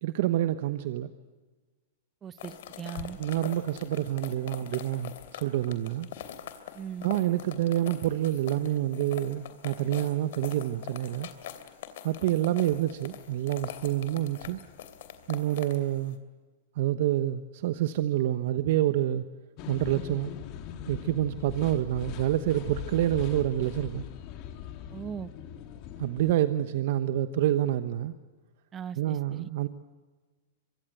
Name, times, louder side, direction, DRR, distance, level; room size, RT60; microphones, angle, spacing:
voice 1, 0.0-1.1 3.2-5.1 5.4-6.1 7.0-11.3 12.0-14.6 15.3-16.2 16.8-19.2 19.7-20.3 20.9-24.1 26.0-28.1 29.0-29.7, right 13 dB, 60° right, 11 dB, 1.1 m, -27 dB
voice 2, 2.2-3.2 6.7-7.1 24.9-25.3 28.7-29.5, right 8 dB, 25° right, 14 dB, 1.2 m, -39 dB
sound 1, 2.4-16.1, left 10 dB, 70° left, 2.9 m, -43 dB
sound 2, 19.6-26.3, left 9 dB, 45° left, 3.3 m, -40 dB
25.0 x 23.0 x 8.0 m, 1.3 s
hypercardioid pair, 120°, 0 cm